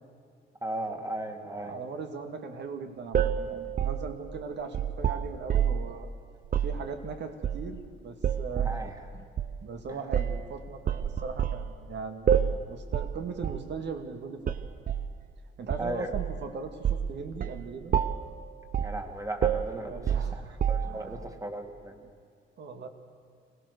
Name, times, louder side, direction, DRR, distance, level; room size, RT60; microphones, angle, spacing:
voice 1, 0.6-1.8 8.6-8.9 15.8-16.1 18.8-20.0 20.3-21.9, right 1 dB, 15° right, 4 dB, 2.3 m, -36 dB
voice 2, 1.4-6.1 6.6-8.8 9.1-9.2 9.6-14.6 15.6-17.9 19.7-20.6 20.8-21.3 22.0-22.1 22.6-22.9, right 5 dB, 60° right, 5 dB, 2.1 m, -39 dB
sound 1, 3.1-5.9 6.4-6.8 7.4-7.9 8.2-8.8 9.4-9.5 10.1-10.4 10.9-11.7 12.3-12.6 12.9-13.2 13.4-13.7 14.5-15.1 15.7-16.4 16.8-17.1 17.4-17.6 17.9-18.3 18.7-19.0 19.4-21.1, right 8 dB, 45° right, 0.8 m, -28 dB
25.5 x 17.5 x 6.7 m, 2.1 s
cardioid pair, 90°, 20 cm